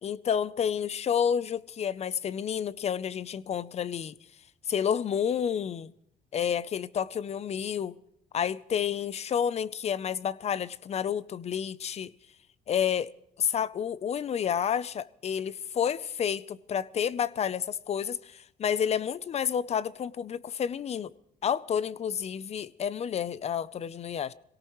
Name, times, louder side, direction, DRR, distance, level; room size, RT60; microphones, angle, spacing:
voice 1, 0.0-4.1 4.7-5.9 6.3-7.9 8.3-12.1 12.7-13.1 13.4-21.1 21.4-24.3, left 8 dB, 40° left, 0.6 m, -30 dB
26.0 x 17.5 x 3.1 m
cardioid pair, 110°, 17 cm